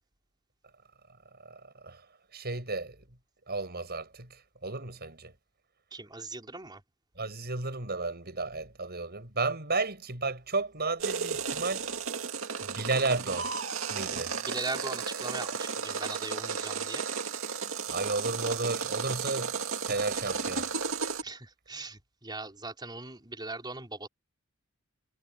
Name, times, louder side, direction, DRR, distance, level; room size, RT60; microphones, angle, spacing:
voice 1, 1.4-2.0 2.3-3.0 3.5-5.3 7.2-11.9 12.6-13.5 13.9-14.3 17.9-19.5 19.9-20.7, right 3 dB, 45° right, 7.3 m, -33 dB
voice 2, 5.9-6.8 14.1-17.1 21.2-24.1, right 3 dB, 20° right, 4.8 m, -39 dB
sound 1, 11.0-21.2, right 5 dB, 65° right, 2.3 m, -34 dB
head